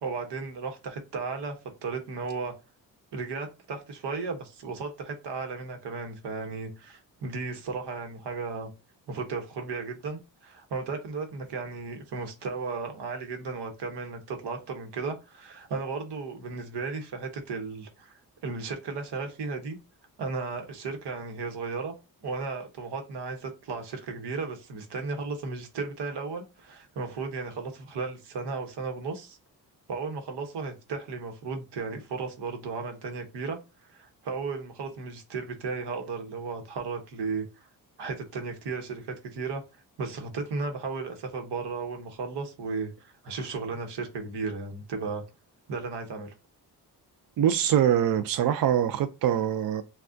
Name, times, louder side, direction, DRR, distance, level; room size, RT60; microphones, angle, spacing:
voice 1, 0.0-1.6 1.8-2.5 3.1-8.7 9.1-19.8 20.2-21.9 22.2-29.4 29.9-33.6 33.9-37.4 38.0-39.6 40.0-45.2 45.7-46.3, right 4 dB, 85° right, 1.1 m, -35 dB
voice 2, 47.4-49.8, right 10 dB, 60° right, 0.5 m, -24 dB
6.0 x 2.3 x 2.5 m
cardioid pair, 100°, 39 cm